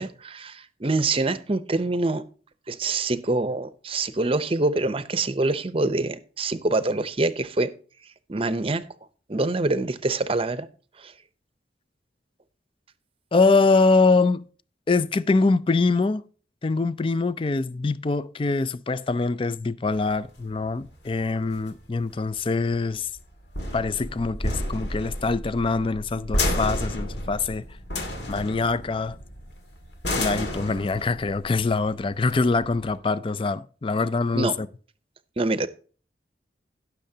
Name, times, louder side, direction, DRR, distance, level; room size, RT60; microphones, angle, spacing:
voice 1, 0.0-2.2 2.7-7.7 8.3-8.8 9.3-10.7 11.0-11.1 34.3-34.5 35.4-35.7, right 2 dB, 30° right, 0.7 m, -25 dB
voice 2, 13.3-14.5 14.9-16.2 16.6-23.1 23.7-27.6 28.3-29.2 30.2-34.7, left 3 dB, 30° left, 0.4 m, -24 dB
sound 1, 19.9-33.0, left 1 dB, 70° left, 2.1 m, -32 dB
17.0 x 6.5 x 2.8 m
head